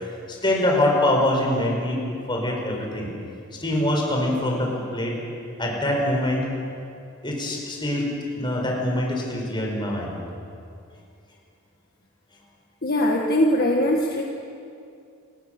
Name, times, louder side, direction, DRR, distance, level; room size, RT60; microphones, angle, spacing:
voice 1, 0.3-2.0 2.3-3.1 3.6-5.2 5.6-6.5 7.2-8.1 8.4-10.1, left 1 dB, 20° left, 0 dB, 5.1 m, -24 dB
voice 2, 12.8-14.2, left 1 dB, 45° left, 0 dB, 1.7 m, -21 dB
29.0 x 19.5 x 6.7 m, 2.5 s
head